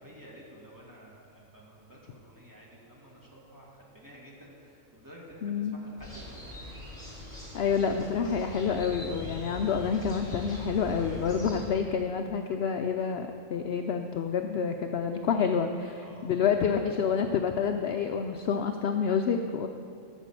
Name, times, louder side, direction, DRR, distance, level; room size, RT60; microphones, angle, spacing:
voice 1, 0.0-6.4 16.0-16.4, equal, 15° right, -4 dB, 2.1 m, -51 dB
voice 2, 5.4-5.8 7.5-19.7, left 6 dB, 60° left, 5 dB, 0.7 m, -28 dB
sound 1, 6.0-11.7, left 1 dB, 25° left, 3.3 m, -42 dB
12.5 x 6.3 x 7.4 m, 2.4 s
omnidirectional pair, 1.4 m